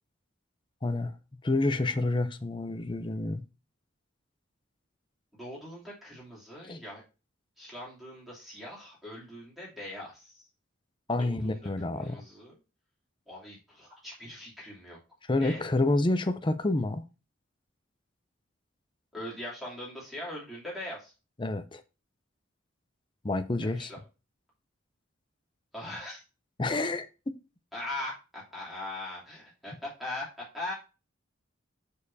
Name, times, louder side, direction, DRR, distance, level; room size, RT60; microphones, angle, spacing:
voice 1, 0.8-1.1 1.4-3.4 6.6-6.8 11.1-12.2 15.3-17.0 21.4-21.8 23.2-23.9 26.6-27.3, left 2 dB, 25° left, 0.6 m, -28 dB
voice 2, 5.3-7.0 7.6-10.4 11.2-11.6 11.9-12.5 13.3-15.0 15.4-15.6 19.1-21.1 23.6-24.0 25.7-26.2 27.7-30.3 30.5-30.7, left 1 dB, ahead, 3.0 m, -41 dB
7.3 x 6.6 x 2.7 m
head